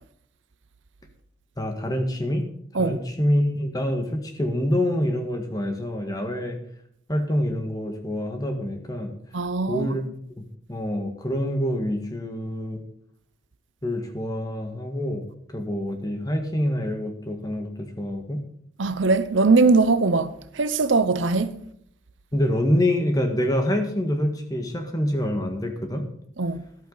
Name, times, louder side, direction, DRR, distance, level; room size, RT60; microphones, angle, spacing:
voice 1, 1.6-2.5 2.8-6.6 7.1-9.1 9.7-10.4 10.7-12.8 13.8-15.2 15.5-18.4 22.3-26.0, left 1 dB, 20° left, 1.7 m, -26 dB
voice 2, 9.3-9.9 18.8-21.5 26.4-26.6, right 3 dB, 70° right, 0.7 m, -21 dB
13.5 x 11.5 x 4.1 m
head